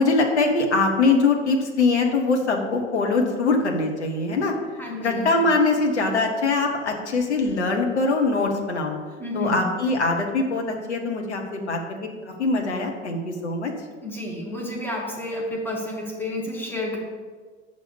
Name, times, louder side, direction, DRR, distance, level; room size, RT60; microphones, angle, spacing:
voice 1, 0.0-4.5 5.0-9.0 9.3-13.7, left 3 dB, 75° left, 2 dB, 1.1 m, -22 dB
voice 2, 4.8-5.3 9.2-9.7 14.0-17.0, left 1 dB, 5° left, -2 dB, 2.2 m, -30 dB
6.5 x 5.3 x 6.9 m, 1.5 s
figure-of-eight pair, 75°, 34 cm